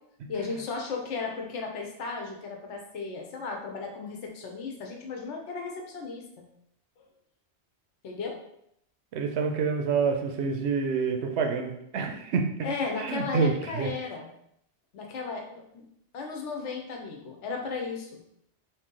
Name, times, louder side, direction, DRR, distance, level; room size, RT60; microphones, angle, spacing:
voice 1, 0.3-6.5 8.0-8.4 12.6-14.3 14.9-15.9 16.1-18.2, left 4 dB, 80° left, 1 dB, 1.0 m, -35 dB
voice 2, 9.1-12.4 13.0-13.9, right 5 dB, 70° right, 4 dB, 0.8 m, -27 dB
3.2 x 2.8 x 3.7 m, 0.74 s
omnidirectional pair, 1.2 m